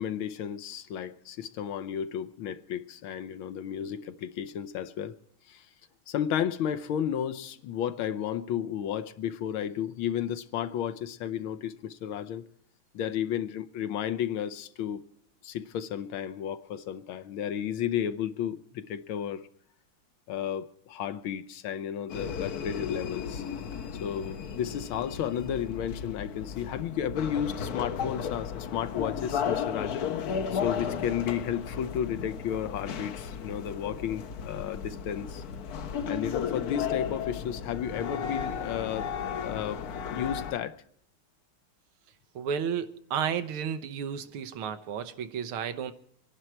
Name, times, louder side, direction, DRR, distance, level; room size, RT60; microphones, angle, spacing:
voice 1, 0.0-5.1 5.5-5.7 6.1-12.4 12.9-15.0 15.4-19.5 20.3-23.4 24.0-35.4 36.0-39.1 39.4-39.8 40.1-40.8, left 9 dB, 75° left, 1.6 m, -33 dB
sound 1, 22.1-40.5, left 7 dB, 60° left, 1.1 m, -34 dB
voice 2, 42.4-45.9, right 7 dB, 90° right, 1.9 m, -32 dB
25.0 x 11.0 x 4.5 m
omnidirectional pair, 2.3 m